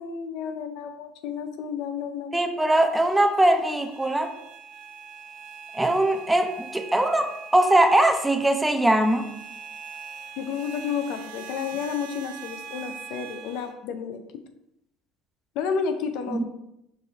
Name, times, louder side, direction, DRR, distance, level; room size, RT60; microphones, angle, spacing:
voice 1, 0.0-2.4 10.4-14.2 15.5-16.4, left 6 dB, 65° left, 8 dB, 0.5 m, -31 dB
voice 2, 2.3-4.3 5.7-9.3 16.3-16.4, right 1 dB, 5° right, 6 dB, 0.4 m, -21 dB
sound 1, 2.9-13.7, right 6 dB, 90° right, 0.9 m, -42 dB
5.4 x 2.6 x 3.4 m, 0.83 s
cardioid pair, 135°, 0 cm